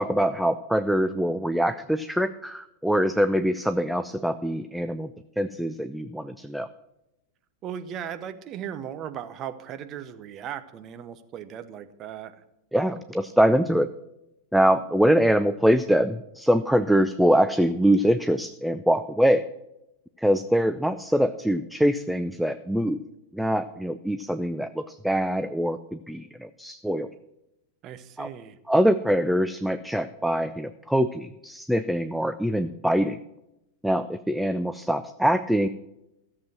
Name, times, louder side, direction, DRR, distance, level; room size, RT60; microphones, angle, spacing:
voice 1, 0.0-5.1 5.4-6.7 12.7-13.9 14.5-19.4 20.2-23.0 23.3-27.1 28.2-28.3 28.7-33.2 33.8-35.7, equal, ahead, 11 dB, 0.4 m, -23 dB
voice 2, 7.6-12.3 27.8-28.6, right 9 dB, 35° right, 10 dB, 1.0 m, -37 dB
14.0 x 7.4 x 6.2 m, 0.89 s
figure-of-eight pair, 90°, 0 cm